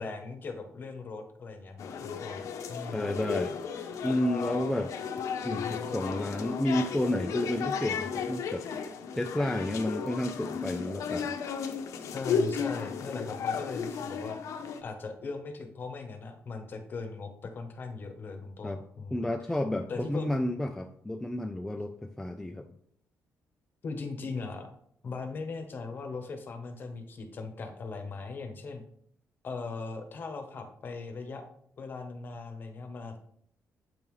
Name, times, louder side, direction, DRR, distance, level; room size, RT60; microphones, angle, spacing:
voice 1, 0.0-3.3 5.3-6.0 12.0-14.4 14.8-19.3 19.9-20.3 23.8-24.7 25.0-28.8 29.4-31.4 31.8-33.2, left 4 dB, 40° left, 6 dB, 0.9 m, -39 dB
sound 1, 1.8-14.8, left 6 dB, 75° left, 0.7 m, -34 dB
voice 2, 2.9-3.5 4.0-4.9 5.4-8.7 9.1-11.4 18.6-18.8 19.1-22.7, left 1 dB, 5° left, 4 dB, 0.3 m, -31 dB
7.7 x 5.4 x 3.1 m, 0.66 s
cardioid pair, 165°, 5 cm